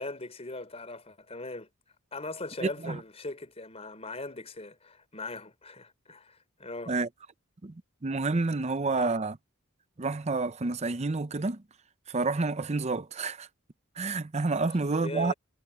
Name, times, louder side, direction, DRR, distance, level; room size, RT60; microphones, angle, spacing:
voice 1, 0.0-1.7 2.1-6.9 9.0-9.2 15.0-15.3, left 2 dB, 30° left, 4.3 m, -40 dB
voice 2, 2.6-3.0 6.9-7.1 7.6-9.4 10.0-11.6 12.1-13.5 14.0-15.3, right 3 dB, 30° right, 0.6 m, -29 dB
head